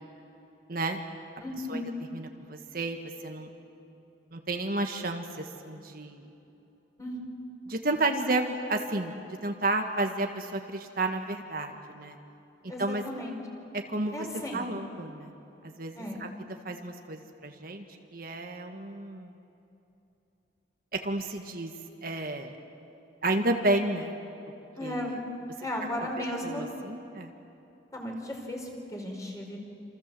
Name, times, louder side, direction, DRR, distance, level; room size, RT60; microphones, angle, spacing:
voice 1, 1.4-1.9 7.0-7.2 12.7-13.3 14.1-14.6 16.0-16.2 24.8-25.2 25.6-26.7 27.9-29.6, left 1 dB, 20° left, 0 dB, 4.6 m, -35 dB
voice 2, 2.1-3.5 4.3-6.2 7.6-12.2 12.8-13.0 13.7-14.3 14.5-15.3 15.6-16.3 16.6-17.8 18.1-19.3 20.9-21.7 22.0-22.6 23.2-24.1 24.8-25.1 26.2-27.3, right 2 dB, 50° right, 4 dB, 1.7 m, -31 dB
28.0 x 27.5 x 7.7 m, 2.9 s
head